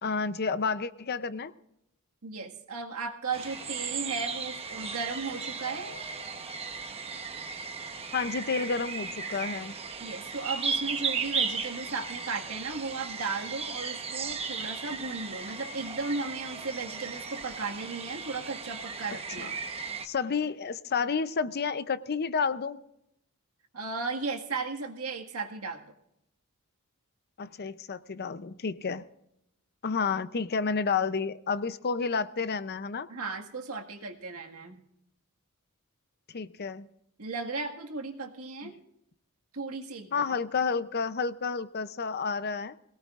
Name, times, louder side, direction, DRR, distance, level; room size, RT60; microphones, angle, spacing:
voice 1, 0.0-1.5 8.1-9.7 19.4-19.5 20.0-22.8 27.4-29.0 29.8-33.1 36.3-36.9 38.6-38.7 40.1-42.8, left 5 dB, 45° left, 14 dB, 0.6 m, -30 dB
voice 2, 2.2-5.9 10.0-19.5 23.7-25.9 33.1-34.8 37.2-38.7 39.5-40.2, right 4 dB, 70° right, 3 dB, 1.8 m, -35 dB
sound 1, 3.3-20.1, right 5 dB, 25° right, 1.0 m, -36 dB
21.5 x 18.0 x 2.5 m, 0.79 s
head